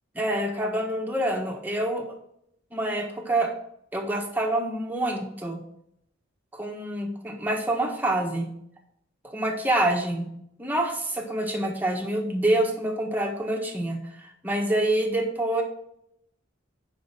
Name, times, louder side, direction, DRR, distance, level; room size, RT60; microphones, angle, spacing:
voice 1, 0.2-2.1 2.7-3.5 3.9-5.6 6.5-8.5 9.2-10.3 10.6-15.6, right 1 dB, 10° right, 1 dB, 1.4 m, -26 dB
10.5 x 5.3 x 4.6 m, 0.74 s
head